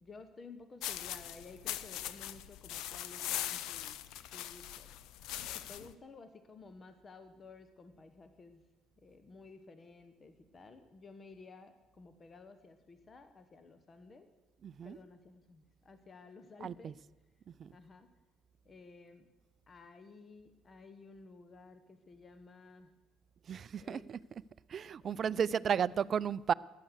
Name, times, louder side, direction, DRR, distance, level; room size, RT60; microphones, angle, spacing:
voice 1, 0.0-4.0 4.3-4.9 5.5-8.6 9.0-14.3 14.8-16.9 17.7-18.1 18.6-19.3 19.7-22.9 23.8-24.0 25.0-26.0, left 4 dB, 35° left, 1.2 m, -54 dB
sound 1, 0.8-5.9, left 12 dB, 70° left, 0.6 m, -41 dB
voice 2, 14.6-15.0 16.6-17.0 17.5-17.7 23.4-24.4 24.7-26.5, right 7 dB, 45° right, 0.4 m, -34 dB
14.5 x 10.5 x 6.6 m
hypercardioid pair, 60°, 0 cm